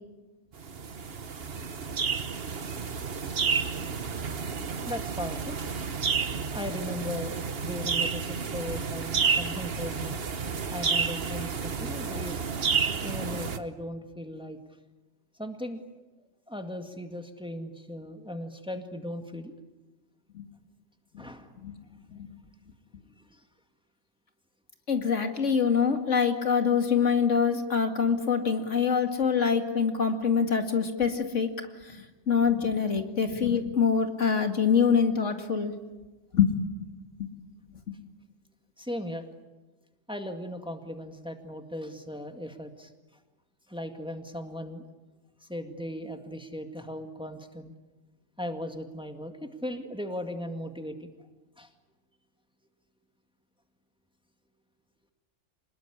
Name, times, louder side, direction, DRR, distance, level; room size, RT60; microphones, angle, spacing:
sound 1, 0.6-13.6, right 6 dB, 55° right, 1.3 m, -30 dB
voice 1, 0.7-1.2 4.3-4.4 4.9-5.6 6.5-7.3 7.6-10.2 10.7-12.4 13.0-14.6 15.4-15.8 16.5-19.6 21.2-21.5 23.2-23.4 38.8-39.3 40.1-42.9 43.7-44.8 45.4-47.8 48.4-51.1 51.6-51.7, left 1 dB, 5° right, 6 dB, 1.9 m, -37 dB
voice 2, 24.9-31.5 32.3-35.7 36.3-36.6, left 6 dB, 80° left, 5 dB, 2.5 m, -25 dB
26.0 x 20.5 x 9.9 m, 1.2 s
omnidirectional pair, 1.3 m